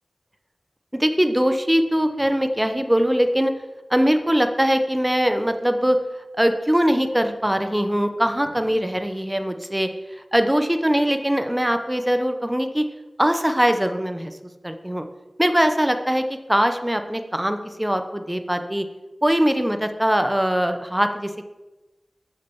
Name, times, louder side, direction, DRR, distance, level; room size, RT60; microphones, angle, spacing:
voice 1, 0.9-3.5 3.9-6.0 6.4-9.9 10.3-12.8 13.2-14.3 14.6-15.0 15.4-18.8 19.2-21.5, equal, 10° right, 7 dB, 0.8 m, -21 dB
6.6 x 6.5 x 7.0 m, 1.1 s
cardioid pair, 50°, 0 cm